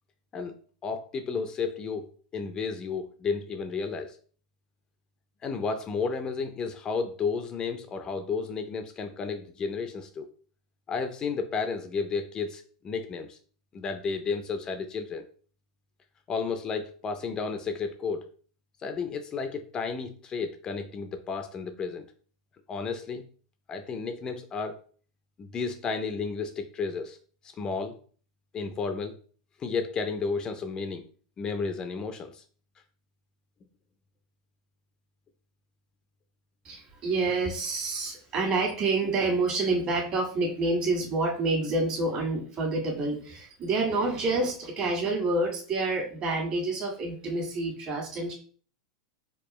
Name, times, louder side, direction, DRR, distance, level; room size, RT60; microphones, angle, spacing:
voice 1, 0.8-4.2 5.4-10.3 10.9-13.4 13.7-15.3 16.3-18.3 18.8-22.0 22.7-23.2 23.7-24.8 25.4-27.2 27.4-28.0 28.5-29.2 29.6-31.1 31.4-32.4, left 5 dB, 25° left, 7 dB, 0.4 m, -32 dB
voice 2, 36.6-48.3, right 2 dB, 40° right, 0 dB, 1.6 m, -28 dB
4.4 x 2.3 x 3.0 m, 0.43 s
supercardioid pair, 120°, 3 cm